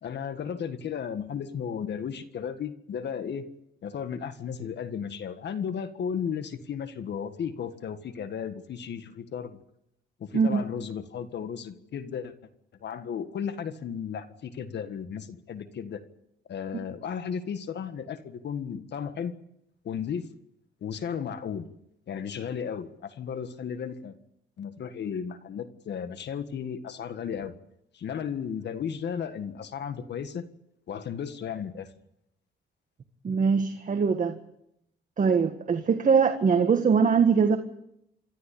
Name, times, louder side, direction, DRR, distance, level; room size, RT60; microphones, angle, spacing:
voice 1, 0.0-3.4 3.8-9.6 10.2-12.3 12.8-16.0 16.4-19.3 19.8-20.3 20.8-21.7 22.1-24.2 24.6-27.5 27.9-30.4 30.9-31.9, left 7 dB, 60° left, 10 dB, 1.7 m, -34 dB
voice 2, 33.2-34.4 35.2-37.6, right 5 dB, 40° right, 6 dB, 1.7 m, -22 dB
27.0 x 13.0 x 8.5 m, 0.79 s
cardioid pair, 90°, 20 cm